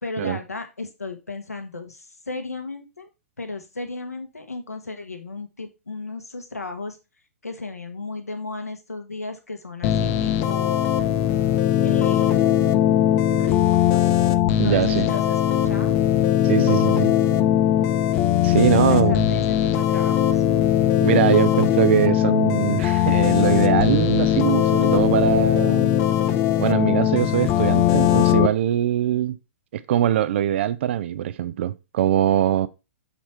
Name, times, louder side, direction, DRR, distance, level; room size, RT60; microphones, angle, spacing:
voice 1, 0.0-3.1 3.4-7.0 7.4-10.9 11.8-12.7 13.3-14.1 14.6-16.0 18.5-20.4, left 3 dB, 80° left, 1.6 m, -34 dB
sound 1, 9.8-28.5, left 11 dB, 30° left, 0.7 m, -20 dB
voice 2, 14.6-15.1 16.4-17.1 18.4-19.1 21.0-25.9 26.6-29.4 29.7-32.7, right 11 dB, 50° right, 0.5 m, -22 dB
6.9 x 4.3 x 4.5 m
figure-of-eight pair, 115°, 8 cm